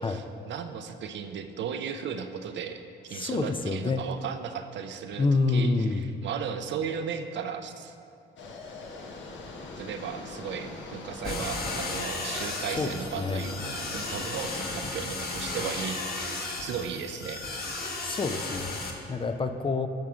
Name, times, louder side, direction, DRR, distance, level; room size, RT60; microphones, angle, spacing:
voice 1, 0.0-7.9 9.8-17.4, right 7 dB, 65° right, 7 dB, 0.6 m, -36 dB
voice 2, 3.1-4.0 5.2-6.1 12.8-13.4 18.0-18.8 19.1-19.9, left 3 dB, 25° left, 8 dB, 0.4 m, -27 dB
sound 1, 8.4-14.8, left 3 dB, 70° left, 1.1 m, -42 dB
sound 2, 11.2-18.9, left 3 dB, 50° left, 1.3 m, -34 dB
10.5 x 3.7 x 6.1 m, 2.5 s
cardioid pair, 90°, 20 cm